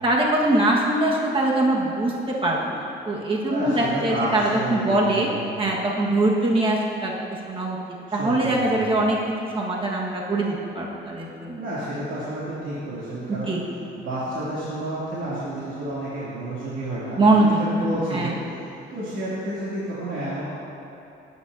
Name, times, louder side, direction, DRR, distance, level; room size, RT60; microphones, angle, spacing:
voice 1, 0.0-5.3 5.6-7.1 7.5-7.8 8.1-9.2 9.5-11.6 13.3-13.6 17.2-18.3, right 2 dB, 25° right, -3 dB, 1.6 m, -22 dB
voice 2, 3.4-5.5 8.1-8.9 11.6-13.5 13.9-20.4, right 1 dB, 80° right, -10 dB, 2.8 m, -31 dB
19.0 x 9.5 x 2.8 m, 2.8 s
cardioid pair, 90°, 20 cm